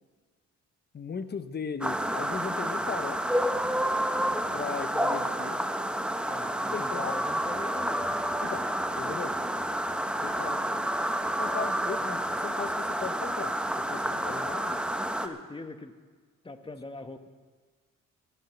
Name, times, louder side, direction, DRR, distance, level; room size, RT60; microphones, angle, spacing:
voice 1, 0.9-3.2 4.5-5.7 6.7-7.2 8.4-8.7 9.0-9.3 10.2-10.6 11.4-13.6 13.9-14.8, left 5 dB, 35° left, 11 dB, 1.0 m, -37 dB
sound 1, 1.8-15.3, right 1 dB, 5° right, 1.0 m, -29 dB
voice 2, 6.3-8.5 10.2-10.5 11.0-11.4 15.0-15.9 16.4-17.3, left 3 dB, 15° left, 8 dB, 1.1 m, -42 dB
15.0 x 11.5 x 6.0 m, 1.5 s
cardioid pair, 90°, 30 cm